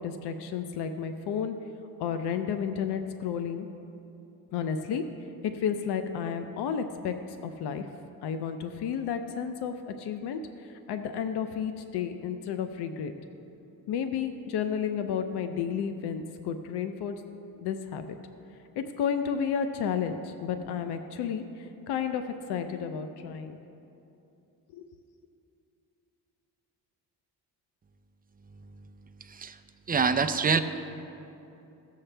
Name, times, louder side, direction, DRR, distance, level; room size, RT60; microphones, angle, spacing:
voice 1, 0.0-1.6 2.0-3.7 4.5-5.0 5.4-7.1 7.4-7.9 8.2-13.1 13.9-17.2 17.6-18.2 18.8-23.6 24.7-24.9, left 7 dB, 85° left, 8 dB, 0.6 m, -32 dB
voice 2, 28.5-28.9 29.2-29.6 29.9-30.6, right 5 dB, 25° right, 9 dB, 0.5 m, -27 dB
16.5 x 7.5 x 3.3 m, 2.8 s
cardioid pair, 90°, 39 cm